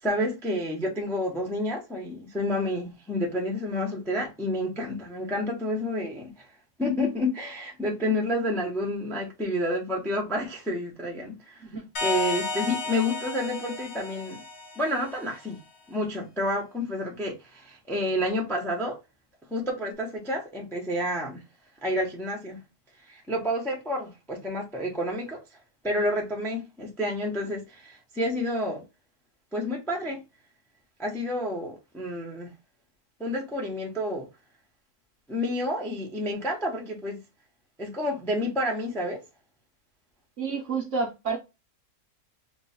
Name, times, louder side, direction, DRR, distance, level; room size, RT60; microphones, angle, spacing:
voice 1, 0.0-6.5 6.8-11.6 12.0-14.4 14.8-15.6 15.9-19.0 19.5-21.4 21.8-22.6 23.1-25.4 25.8-28.8 29.5-30.2 31.0-32.5 33.2-34.3 35.3-37.2 37.8-39.2, left 1 dB, 5° left, 0.5 m, -29 dB
sound 1, 12.0-15.4, left 3 dB, 55° left, 0.8 m, -33 dB
voice 2, 40.4-41.4, right 5 dB, 60° right, 0.8 m, -29 dB
3.0 x 2.3 x 4.1 m
omnidirectional pair, 1.8 m